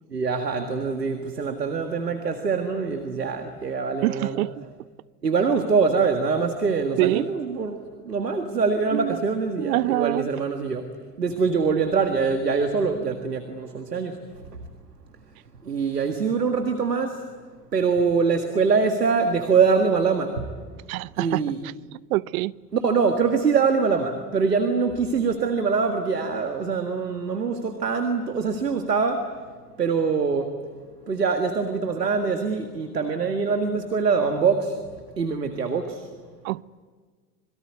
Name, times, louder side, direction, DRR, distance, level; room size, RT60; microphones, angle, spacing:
voice 1, 0.1-4.4 5.2-10.9 11.2-14.2 15.6-17.2 17.7-20.5 21.2-21.6 22.7-29.3 29.8-30.6 31.1-34.8 35.2-36.1, right 5 dB, 90° right, 1.9 m, -24 dB
voice 2, 4.0-4.6 7.0-7.3 8.9-9.2 9.6-10.3 20.9-21.7 22.1-22.5 36.4-36.6, right 19 dB, 65° right, 0.8 m, -25 dB
27.5 x 22.5 x 9.5 m
hypercardioid pair, 80°, 47 cm